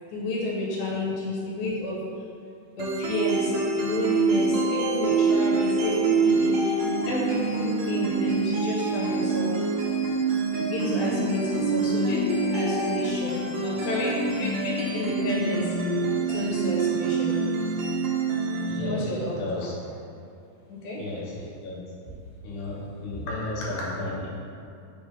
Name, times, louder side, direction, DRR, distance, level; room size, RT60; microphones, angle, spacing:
voice 1, 0.1-2.0 2.8-9.7 10.6-15.7 16.3-17.4 18.9-19.4 20.7-21.0 23.1-23.2 23.8-23.9, left 1 dB, 90° left, -4 dB, 3.0 m, -30 dB
sound 1, 2.8-18.8, right 3 dB, 80° right, 1.5 m, -26 dB
voice 2, 18.6-19.7 21.0-21.9 22.4-24.3, left 2 dB, 65° left, -6 dB, 2.4 m, -34 dB
6.2 x 3.4 x 5.3 m, 2.5 s
omnidirectional pair, 4.1 m